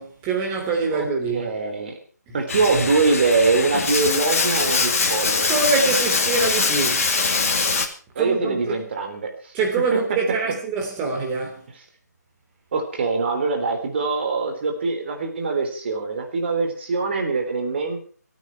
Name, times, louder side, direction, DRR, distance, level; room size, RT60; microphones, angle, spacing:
voice 1, 0.0-1.5 5.5-7.1 8.2-8.7 9.5-11.6, right 4 dB, 15° right, 3.3 m, -24 dB
voice 2, 1.3-1.9 2.3-5.5 8.2-9.5 9.9-10.0 10.4-10.5 12.7-18.0, right 4 dB, 40° right, 3.6 m, -23 dB
Bathtub (filling or washing), 2.5-7.9, left 4 dB, 50° left, 2.5 m, -22 dB
26.5 x 9.4 x 4.8 m
figure-of-eight pair, 155°, 9 cm